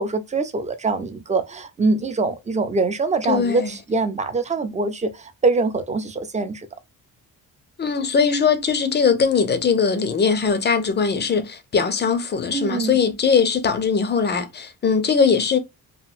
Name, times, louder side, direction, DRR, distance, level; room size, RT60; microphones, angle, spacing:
voice 1, 0.0-6.7 12.5-13.0, right 3 dB, 20° right, 0.5 m, -23 dB
voice 2, 3.3-3.7 7.8-15.6, left 5 dB, 30° left, 0.6 m, -20 dB
2.9 x 2.5 x 2.4 m
cardioid pair, 120°, 36 cm